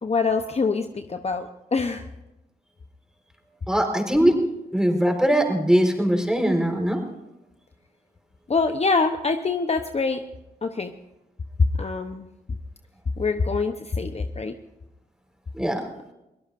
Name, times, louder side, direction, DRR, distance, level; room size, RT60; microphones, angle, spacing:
voice 1, 0.0-2.1 8.5-10.2 10.6-10.9 11.6-12.3 13.2-14.6, left 4 dB, 40° left, 6 dB, 1.0 m, -24 dB
voice 2, 3.7-4.4 4.7-7.0 15.5-15.8, equal, 5° right, 3 dB, 4.6 m, -21 dB
24.0 x 17.0 x 2.7 m, 0.94 s
cardioid pair, 55°, 17 cm